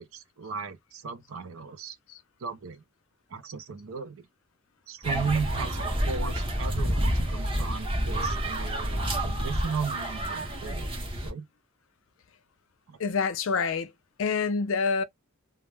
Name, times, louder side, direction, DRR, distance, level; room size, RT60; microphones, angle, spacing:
voice 1, 0.0-2.0 2.4-2.8 3.3-4.2 4.9-10.9 11.2-11.5 12.9-13.0, right 5 dB, 65° right, 0.5 m, -36 dB
sound 1, 5.0-11.3, right 1 dB, 25° right, 0.7 m, -29 dB
voice 2, 13.0-13.9 14.2-15.0, left 5 dB, 60° left, 0.4 m, -26 dB
2.2 x 2.1 x 3.2 m
head